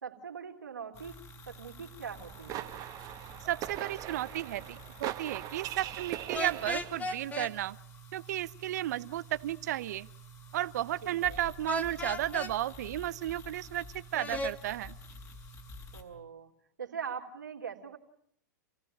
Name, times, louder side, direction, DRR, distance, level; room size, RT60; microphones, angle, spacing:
voice 1, 0.0-1.2 1.5-2.7 11.0-11.4 15.9-16.5 16.8-18.0, right 7 dB, 85° right, 3 dB, 3.2 m, -42 dB
sound 1, 0.9-16.0, equal, 35° left, 5.5 m, -50 dB
sound 2, 2.1-7.1, right 13 dB, 40° right, 1.5 m, -41 dB
voice 2, 3.4-7.8 8.1-10.1 10.5-14.9, right 13 dB, 65° right, 17 dB, 0.9 m, -33 dB
sound 3, 6.3-7.5 11.7-12.5 14.1-14.5, left 2 dB, 15° left, 2.0 m, -35 dB
28.5 x 16.5 x 8.9 m, 0.71 s
hypercardioid pair, 105°, 10 cm